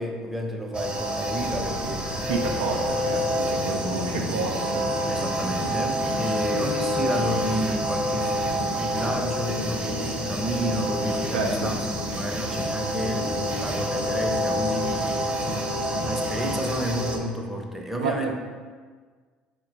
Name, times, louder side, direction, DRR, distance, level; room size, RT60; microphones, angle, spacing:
voice 1, 0.0-2.1 3.7-4.4 5.1-15.3 16.0-18.3, equal, 5° right, 1 dB, 0.6 m, -31 dB
sound 1, 0.7-17.2, equal, 30° right, 0.8 m, -28 dB
sound 2, 1.4-16.6, left 2 dB, 45° left, 0.5 m, -37 dB
voice 2, 2.2-4.8 11.3-11.7 18.0-18.3, right 4 dB, 85° right, 1 dB, 0.4 m, -29 dB
Singing, 2.6-8.0 8.6-12.5, right 1 dB, 85° left, 0.9 m, -42 dB
4.3 x 2.2 x 3.9 m, 1.5 s
hypercardioid pair, 60°, 4 cm